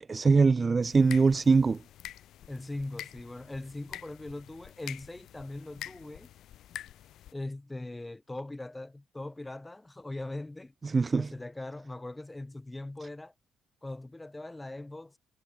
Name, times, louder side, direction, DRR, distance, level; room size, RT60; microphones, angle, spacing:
voice 1, 0.1-1.8 10.8-11.3, right 4 dB, 25° right, 0.5 m, -22 dB
sound 1, 0.8-7.3, left 12 dB, 70° left, 1.5 m, -46 dB
voice 2, 2.5-6.3 7.3-10.7 11.1-13.3 13.8-15.2, left 2 dB, 10° left, 3.5 m, -40 dB
cardioid pair, 135°, 0 cm